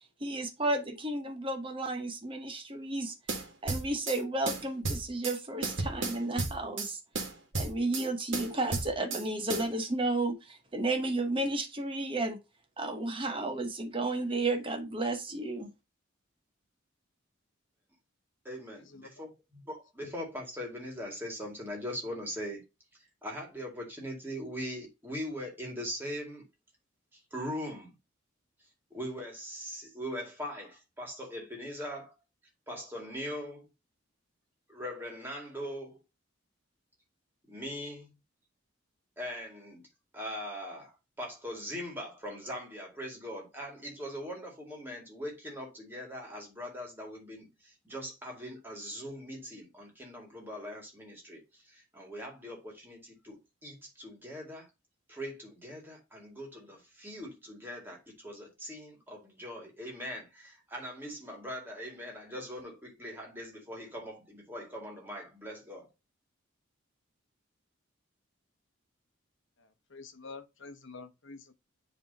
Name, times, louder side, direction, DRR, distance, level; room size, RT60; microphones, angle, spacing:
voice 1, 0.2-3.1 3.6-7.0 7.5-12.4 12.8-15.7, right 2 dB, 25° right, 1.0 m, -32 dB
sound 1, 3.3-4.2 4.5-5.4 5.6-6.9 7.2-8.1 8.3-9.2 9.5-9.7, right 3 dB, 70° right, 1.6 m, -33 dB
voice 2, 18.4-22.6 22.9-26.4 27.1-27.9 28.9-32.1 32.7-33.7 34.7-36.0 37.5-38.1 39.2-39.8 40.1-54.7 55.1-65.9, equal, 10° right, 2.2 m, -41 dB
voice 3, 69.9-71.5, left 4 dB, 70° left, 0.9 m, -47 dB
10.0 x 3.4 x 2.8 m
head